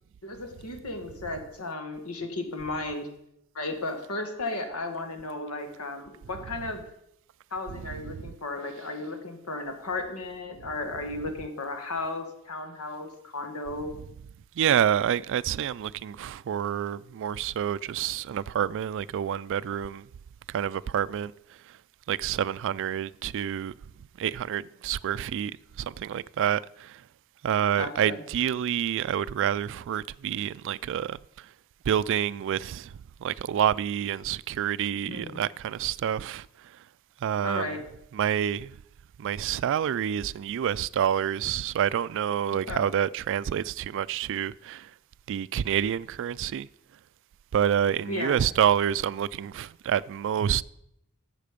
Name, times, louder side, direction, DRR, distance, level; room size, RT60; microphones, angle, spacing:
voice 1, 0.2-3.1 3.5-6.8 7.5-13.9 27.8-28.2 35.1-35.4 37.4-37.8 42.7-42.8 48.1-48.4, left 2 dB, 90° left, 1.7 m, -34 dB
voice 2, 14.6-20.1 20.5-21.3 22.1-23.7 24.2-25.5 25.8-27.0 27.4-31.2 31.9-32.9 33.2-36.5 37.2-37.8 38.1-38.7 39.2-44.9 45.3-46.7 47.5-50.6, right 9 dB, 60° right, 0.3 m, -28 dB
11.5 x 7.5 x 5.1 m
head